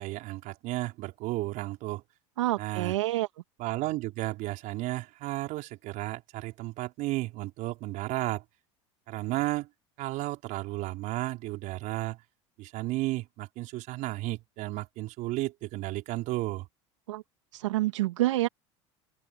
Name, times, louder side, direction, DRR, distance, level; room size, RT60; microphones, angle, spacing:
voice 1, 0.0-2.0 2.6-2.9 3.6-8.4 9.1-9.7 10.0-12.2 12.6-16.7, right 19 dB, 60° right, 4.9 m, -33 dB
voice 2, 2.4-3.3 17.1-17.2 17.5-18.5, right 16 dB, 85° right, 1.9 m, -27 dB
open air
hypercardioid pair, 95°, 15 cm